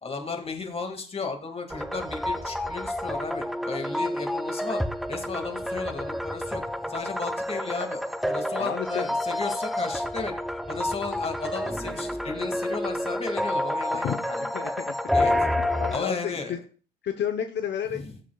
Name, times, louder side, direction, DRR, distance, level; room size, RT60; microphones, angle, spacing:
voice 1, 0.0-4.8 5.1-6.6 6.9-10.3 10.7-14.5 15.1-15.5 15.9-16.6 17.9-18.2, left 4 dB, 30° left, 5 dB, 2.0 m, -34 dB
sound 1, 1.7-16.0, left 1 dB, ahead, 0.6 m, -29 dB
voice 2, 8.6-9.1 13.9-14.2 14.5-14.9 15.7-16.6 17.0-18.0, left 9 dB, 65° left, 6 dB, 0.8 m, -31 dB
17.5 x 7.6 x 2.3 m, 0.39 s
cardioid pair, 90°, 20 cm